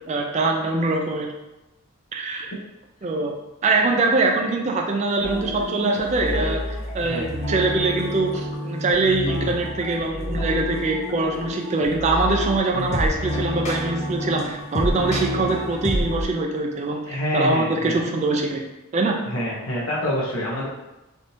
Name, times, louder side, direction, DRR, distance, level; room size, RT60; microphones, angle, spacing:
voice 1, 0.1-1.3 2.1-2.5 3.0-3.3 3.6-6.6 6.9-17.0 17.3-18.6 18.9-19.2, right 3 dB, 30° right, 1 dB, 0.3 m, -23 dB
sound 1, 5.2-16.2, left 1 dB, 30° left, 0.5 m, -28 dB
voice 2, 7.0-7.3 12.7-12.9 17.0-18.0 19.2-20.7, left 1 dB, 70° left, -6 dB, 0.7 m, -27 dB
3.4 x 2.7 x 2.6 m, 0.98 s
head